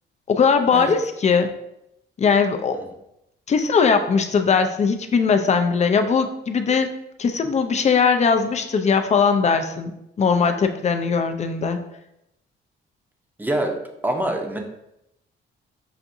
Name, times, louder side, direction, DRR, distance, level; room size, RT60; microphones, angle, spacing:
voice 1, 0.3-1.5 2.2-2.8 3.5-6.9 7.2-9.9 10.2-11.8, left 5 dB, 35° left, 7 dB, 0.4 m, -19 dB
voice 2, 13.4-13.8 14.0-14.6, right 1 dB, 10° right, 3 dB, 0.7 m, -25 dB
5.7 x 2.6 x 2.6 m, 0.84 s
cardioid pair, 90°, 20 cm